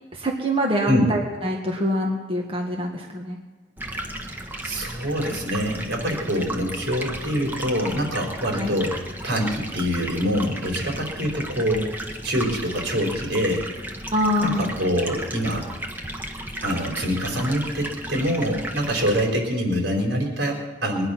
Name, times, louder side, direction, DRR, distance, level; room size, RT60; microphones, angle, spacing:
voice 1, 0.1-3.4 8.4-8.8 14.1-14.7, equal, 30° right, -1 dB, 1.8 m, -25 dB
Stream, 3.8-19.2, right 1 dB, 10° right, 1.4 m, -34 dB
voice 2, 4.6-9.0 9.2-13.7 14.4-15.7 16.6-21.1, equal, 80° right, 1 dB, 4.4 m, -25 dB
22.0 x 10.5 x 5.8 m, 1.2 s
head